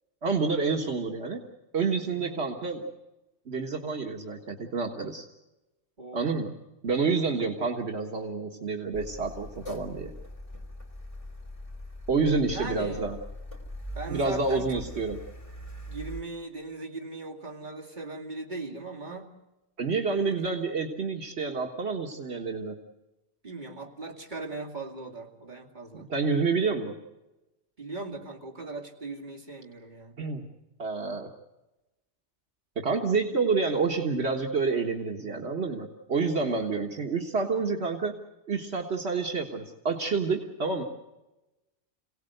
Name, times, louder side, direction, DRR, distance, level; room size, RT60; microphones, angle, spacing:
voice 1, 0.2-1.4 1.7-2.8 3.5-5.3 6.1-6.5 6.8-10.1 12.1-13.2 14.1-15.2 19.8-22.8 25.9-26.9 30.2-30.4 30.8-31.3 32.8-38.2 38.5-40.8, right 4 dB, 70° right, 1 dB, 1.8 m, -28 dB
voice 2, 2.1-2.4 6.0-6.4 12.4-13.1 13.9-14.9 15.9-19.3 20.1-20.7 23.4-26.1 27.8-30.2, right 3 dB, 45° right, 0 dB, 2.7 m, -39 dB
Car, 8.9-16.2, equal, 30° left, 3.1 m, -42 dB
26.5 x 18.0 x 7.9 m, 1.0 s
omnidirectional pair, 1.1 m